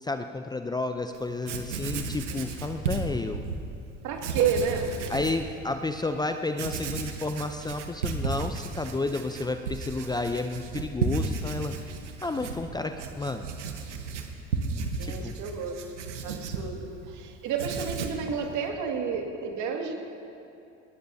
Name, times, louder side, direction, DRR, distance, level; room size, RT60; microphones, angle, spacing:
voice 1, 0.0-3.4 5.1-11.9 12.2-13.5 15.0-15.3, left 2 dB, 10° left, 7 dB, 0.6 m, -31 dB
Writing, 1.1-1.2 1.4-3.6 4.1-5.4 5.9-6.0 6.5-17.2 17.5-18.3, right 4 dB, 90° right, 1.2 m, -34 dB
voice 2, 4.0-5.0 15.0-15.8 16.2-20.0, right 6 dB, 55° right, 2 dB, 2.2 m, -30 dB
19.5 x 19.0 x 2.8 m, 2.7 s
hypercardioid pair, 75°, 35 cm